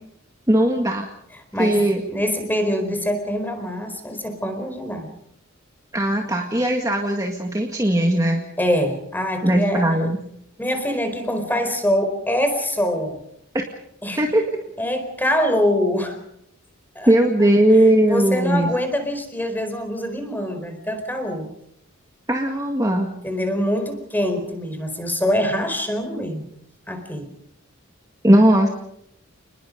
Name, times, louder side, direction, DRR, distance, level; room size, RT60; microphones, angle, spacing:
voice 1, 0.5-1.1 1.6-2.0 5.9-8.5 9.4-10.2 14.2-14.4 17.1-18.7 22.3-23.1 28.2-28.7, right 1 dB, 15° right, 2 dB, 1.9 m, -18 dB
voice 2, 1.5-5.1 8.6-9.8 10.6-13.2 14.0-14.2 14.8-16.2 16.9-17.1 18.0-21.5 23.2-26.4 26.9-27.3, equal, 10° left, 6 dB, 4.5 m, -24 dB
29.5 x 20.5 x 5.2 m, 0.73 s
head